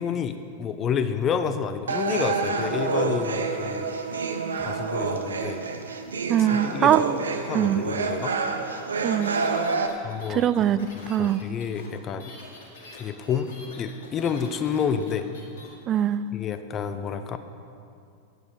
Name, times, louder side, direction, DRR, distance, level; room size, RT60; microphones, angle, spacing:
voice 1, 0.0-3.9 4.6-5.6 6.4-6.9 7.5-8.3 10.0-10.5 10.9-12.3 12.9-13.5 13.8-15.3 16.3-17.4, left 7 dB, 30° left, 10 dB, 0.6 m, -29 dB
sound 1, 1.9-9.9, right 4 dB, 70° right, 0.6 m, -28 dB
voice 2, 6.3-7.2 7.5-7.8 9.0-9.4 10.3-11.4 15.9-16.3, right 10 dB, 30° right, 15 dB, 0.3 m, -22 dB
sound 2, 9.2-15.7, left 2 dB, 55° left, 2.0 m, -45 dB
9.0 x 7.9 x 5.2 m, 2.5 s
figure-of-eight pair, 90°, 0 cm